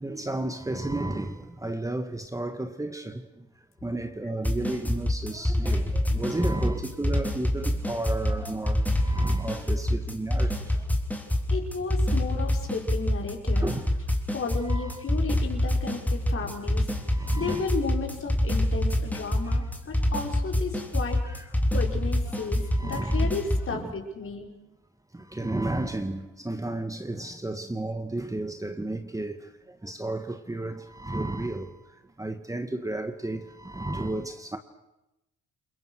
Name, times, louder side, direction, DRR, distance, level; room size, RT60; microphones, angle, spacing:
voice 1, 0.0-3.2 3.8-10.5 13.6-13.8 14.7-15.2 17.1-17.8 21.2-21.4 22.3-23.9 25.3-29.4 29.8-31.7 32.2-34.6, right 2 dB, 10° right, 1.8 m, -33 dB
sound 1, 4.4-23.7, left 1 dB, 5° left, 3.7 m, -26 dB
voice 2, 11.5-13.7 14.3-16.9 17.4-21.2 21.4-24.5, left 4 dB, 45° left, 6.0 m, -33 dB
29.5 x 22.0 x 6.5 m
cardioid pair, 90°, 30 cm